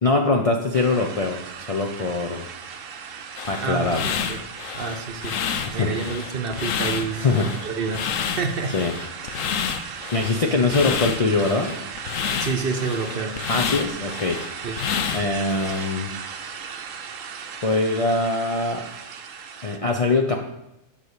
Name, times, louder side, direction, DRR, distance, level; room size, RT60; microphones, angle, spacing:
voice 1, 0.0-2.5 3.5-4.1 5.6-5.9 7.1-7.5 8.7-8.9 10.1-11.7 13.5-14.4 15.1-16.1 17.6-18.8 19.6-20.4, left 3 dB, 40° left, 1 dB, 0.5 m, -22 dB
sound 1, 0.7-19.8, right 6 dB, 75° right, 1.1 m, -37 dB
sound 2, 3.4-15.9, left 8 dB, 80° left, 1.0 m, -29 dB
voice 2, 3.6-4.4 4.7-5.4 5.7-7.3 7.6-8.8 9.4-9.5 12.4-13.4 14.6-14.8, right 4 dB, 50° right, 6 dB, 0.9 m, -28 dB
7.1 x 5.5 x 6.6 m, 0.87 s
omnidirectional pair, 1.4 m